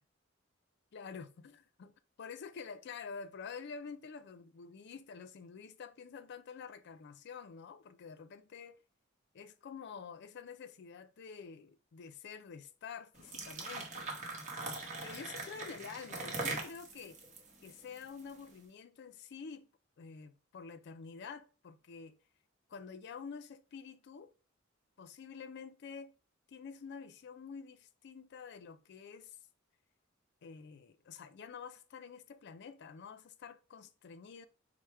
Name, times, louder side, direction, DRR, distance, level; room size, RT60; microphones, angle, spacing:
voice 1, 0.9-8.8 9.3-14.2 15.0-17.2 17.6-19.7 20.0-22.2 22.7-24.3 25.0-26.1 26.5-29.4 30.4-34.5, left 6 dB, 55° left, 0.4 m, -48 dB
sound 1, 13.1-18.4, right 3 dB, 40° right, 1.0 m, -41 dB
4.7 x 2.1 x 4.3 m
head